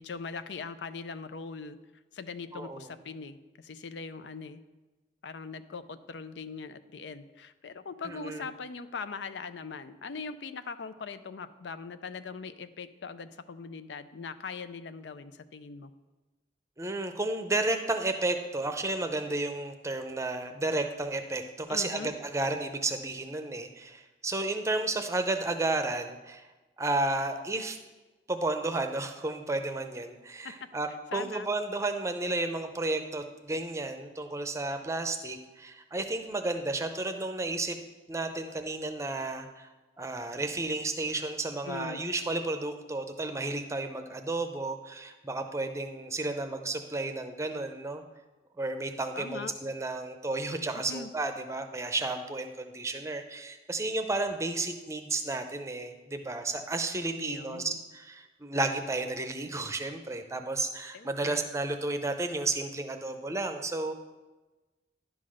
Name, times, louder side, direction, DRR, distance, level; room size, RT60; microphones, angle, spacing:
voice 1, 0.0-1.8 2.1-4.6 5.2-15.9 21.7-22.1 30.4-30.5 31.1-31.5 41.7-42.0 49.1-49.5 50.7-51.1 57.2-57.8 60.9-61.4, left 5 dB, 85° left, 12 dB, 0.5 m, -41 dB
voice 2, 2.5-2.9 8.0-8.4 16.8-26.5 26.8-27.8 28.3-37.8 38.1-39.7 40.0-48.0 48.6-63.9, right 2 dB, 15° right, 7 dB, 0.6 m, -32 dB
10.5 x 3.9 x 6.3 m, 1.2 s
head